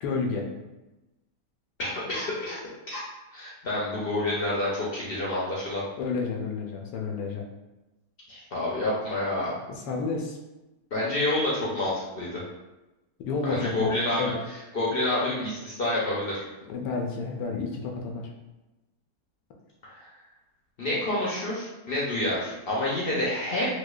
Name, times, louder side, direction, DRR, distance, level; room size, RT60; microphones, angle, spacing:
voice 1, 0.0-0.5 6.0-7.4 9.7-10.4 13.2-13.9 14.2-14.3 16.7-18.3, left 4 dB, 90° left, 1 dB, 1.3 m, -30 dB
voice 2, 1.8-2.6 2.9-3.0 3.3-5.8 8.3-9.6 10.9-12.4 13.4-14.3 14.7-16.4 19.9-20.1 20.8-23.7, left 1 dB, 60° left, -6 dB, 0.6 m, -28 dB
4.5 x 2.2 x 2.3 m, 1.0 s
omnidirectional pair, 1.8 m